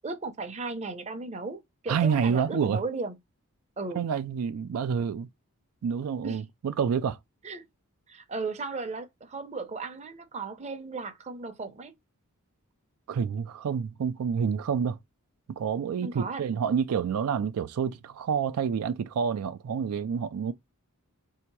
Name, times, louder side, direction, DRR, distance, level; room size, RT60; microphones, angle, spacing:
voice 1, 0.0-3.2 3.8-4.0 6.2-6.4 7.4-7.6 8.1-11.9 16.0-16.4, right 3 dB, 30° right, 0.6 m, -36 dB
voice 2, 1.9-2.8 4.0-5.3 5.8-7.2 13.1-15.0 15.6-20.5, right 7 dB, 75° right, 0.3 m, -28 dB
3.4 x 2.8 x 4.5 m
head